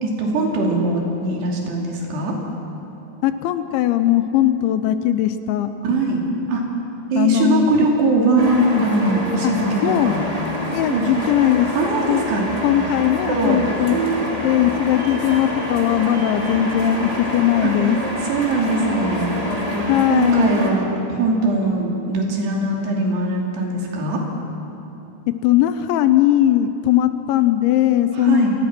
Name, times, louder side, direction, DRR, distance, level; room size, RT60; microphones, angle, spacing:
voice 1, 0.0-2.4 5.8-6.2 6.5-6.6 7.1-8.5 8.8-10.2 10.9-11.1 11.7-12.4 13.3-13.6 13.9-14.3 17.6-17.7 18.3-19.3 19.7-19.8 20.1-24.2 28.1-28.5, right 3 dB, 65° right, -1 dB, 4.7 m, -21 dB
voice 2, 3.2-5.7 7.2-7.7 8.5-8.8 9.4-9.5 9.8-10.1 10.7-11.7 12.1-12.2 12.6-13.9 14.2-18.0 19.9-20.5 25.3-28.5, left 12 dB, 80° left, 10 dB, 3.0 m, -19 dB
sound 1, 8.4-20.7, equal, 15° right, 1.3 m, -27 dB
28.0 x 19.0 x 6.1 m, 2.9 s
omnidirectional pair, 5.5 m